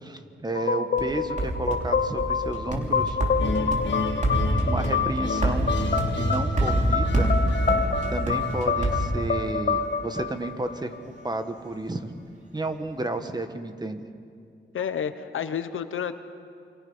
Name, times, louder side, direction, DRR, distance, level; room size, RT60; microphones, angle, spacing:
voice 1, 0.0-3.3 4.7-5.8 6.1-7.3 8.1-10.9 11.2-12.1 12.5-14.1, right 2 dB, 20° right, 8 dB, 1.4 m, -32 dB
sound 1, 0.6-11.2, left 5 dB, 45° left, 1.2 m, -28 dB
sound 2, 1.0-9.8, right 1 dB, 35° right, 3.2 m, -27 dB
sound 3, 3.4-10.5, left 4 dB, 65° left, 1.9 m, -36 dB
voice 2, 14.7-16.1, left 8 dB, 85° left, 10 dB, 1.1 m, -30 dB
28.5 x 24.5 x 5.6 m, 2.4 s
wide cardioid pair, 115°, 20 cm